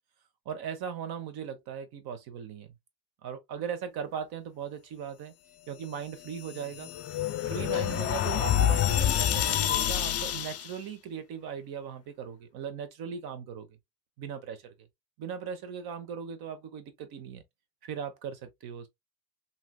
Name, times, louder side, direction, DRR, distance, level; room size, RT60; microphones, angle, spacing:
voice 1, 0.4-2.7 3.2-5.3 5.7-6.9 7.4-13.7 14.2-14.6 15.2-17.4 17.8-18.9, right 7 dB, 65° right, 1.0 m, -38 dB
sound 1, 6.2-10.7, left 10 dB, 40° left, 0.4 m, -28 dB
3.2 x 2.8 x 2.3 m
cardioid pair, 125°, 40 cm